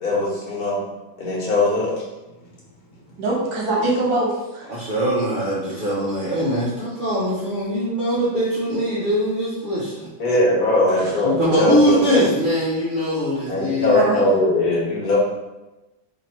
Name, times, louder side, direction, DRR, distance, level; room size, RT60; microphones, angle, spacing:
voice 1, 0.0-0.8 1.2-1.9 10.2-12.2 13.5-15.2, left 2 dB, 55° left, -5 dB, 1.5 m, -20 dB
voice 2, 3.2-4.8 11.0-11.2 13.8-14.2, right 2 dB, 80° right, -4 dB, 2.0 m, -23 dB
voice 3, 4.7-10.1 11.2-14.4, equal, 45° right, -8 dB, 0.6 m, -22 dB
4.2 x 2.9 x 4.4 m, 1.0 s
omnidirectional pair, 2.1 m